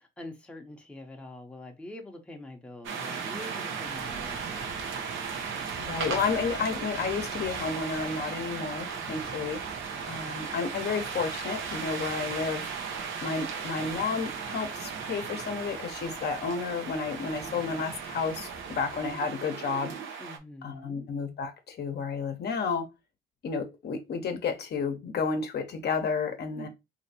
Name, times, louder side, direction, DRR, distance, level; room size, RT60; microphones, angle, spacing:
voice 1, 0.0-5.6 8.9-9.5 9.9-10.4 17.4-17.9 20.2-21.1 26.6-26.7, left 1 dB, 5° left, 0.7 m, -46 dB
sound 1, 2.8-20.4, right 6 dB, 80° right, 0.7 m, -36 dB
voice 2, 5.8-9.6 10.0-12.7 13.2-19.9 20.6-22.9 23.4-26.7, left 5 dB, 55° left, 0.7 m, -31 dB
3.1 x 2.7 x 2.7 m
cardioid pair, 90°, 20 cm